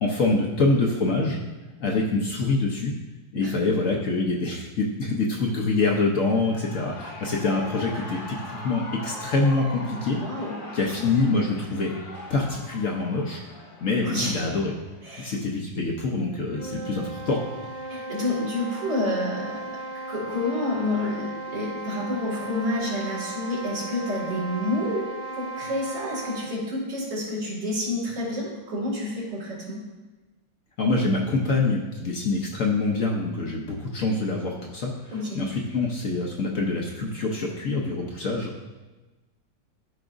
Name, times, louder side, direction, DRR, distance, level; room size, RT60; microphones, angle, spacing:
voice 1, 0.0-1.4 1.8-2.9 3.3-10.2 10.7-11.9 12.3-13.4 13.8-14.7 15.2-17.4 30.8-38.6, left 3 dB, 55° left, -1 dB, 1.0 m, -25 dB
Shout / Cheering, 6.1-15.0, left 2 dB, 85° left, 2.1 m, -41 dB
voice 2, 10.1-10.6 11.0-11.1 14.0-14.4 15.0-15.3 17.9-19.8 20.1-29.8 35.1-35.4, left 1 dB, 80° right, -5 dB, 2.8 m, -29 dB
sound 1, 16.3-26.6, right 2 dB, 30° left, 1.8 m, -36 dB
13.0 x 4.8 x 2.6 m, 1.2 s
omnidirectional pair, 2.0 m